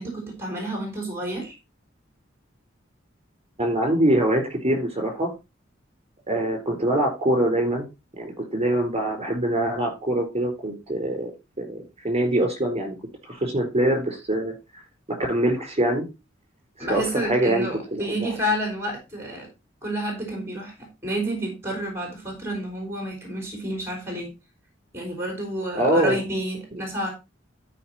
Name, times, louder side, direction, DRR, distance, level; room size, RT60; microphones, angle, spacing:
voice 1, 0.0-1.5 16.8-19.5 19.8-24.3 24.9-27.1, equal, 15° right, 1 dB, 3.8 m, -30 dB
voice 2, 3.6-5.3 6.3-7.8 8.2-11.3 11.6-13.0 13.2-14.5 15.3-16.1 16.8-18.3 25.7-26.2, right 1 dB, 30° right, 4 dB, 4.2 m, -24 dB
12.5 x 5.2 x 4.3 m, 0.27 s
head